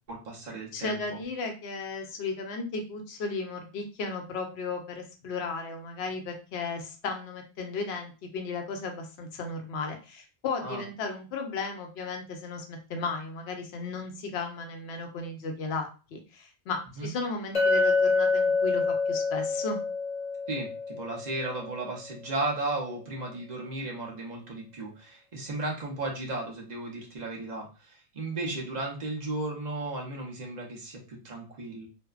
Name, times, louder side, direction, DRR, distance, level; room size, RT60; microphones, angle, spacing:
voice 1, 0.1-1.2 10.6-10.8 17.0-17.1 20.5-31.9, right 2 dB, 45° right, -1 dB, 0.8 m, -35 dB
voice 2, 0.7-19.8, left 4 dB, 80° left, 4 dB, 0.9 m, -35 dB
Chink clink, 17.5-21.8, left 4 dB, 40° left, 0.7 m, -27 dB
2.6 x 2.1 x 2.3 m, 0.34 s
omnidirectional pair, 1.1 m